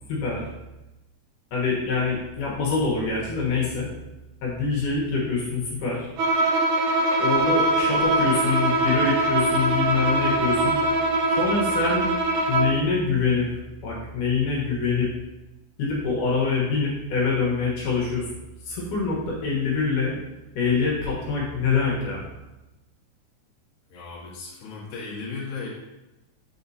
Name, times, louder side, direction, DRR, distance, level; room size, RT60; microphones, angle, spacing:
voice 1, 0.1-0.5 1.5-3.9 4.4-6.1 7.2-10.8 11.4-12.0 12.5-15.1 15.8-18.3 18.7-20.2 20.6-22.2, left 4 dB, 80° left, -5 dB, 2.8 m, -25 dB
Bowed string instrument, 6.2-12.8, right 2 dB, 75° right, 2.1 m, -22 dB
voice 2, 23.9-25.7, left 4 dB, 60° left, -6 dB, 2.5 m, -36 dB
7.7 x 4.8 x 2.8 m, 1.0 s
omnidirectional pair, 3.7 m